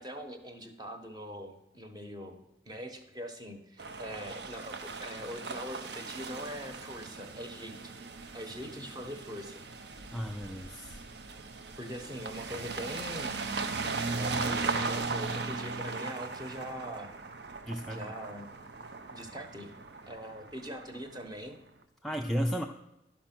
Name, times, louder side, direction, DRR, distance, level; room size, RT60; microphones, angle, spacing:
voice 1, 0.0-8.0 8.3-9.6 11.8-13.8 14.1-17.1 17.9-18.5 19.1-19.7 20.1-21.6, equal, 25° right, 6 dB, 1.0 m, -42 dB
sound 1, 3.8-21.4, right 4 dB, 70° right, 0.7 m, -38 dB
voice 2, 10.1-11.0 17.7-18.0 22.0-22.7, equal, ahead, 1 dB, 0.4 m, -33 dB
11.5 x 5.7 x 5.9 m, 0.92 s
head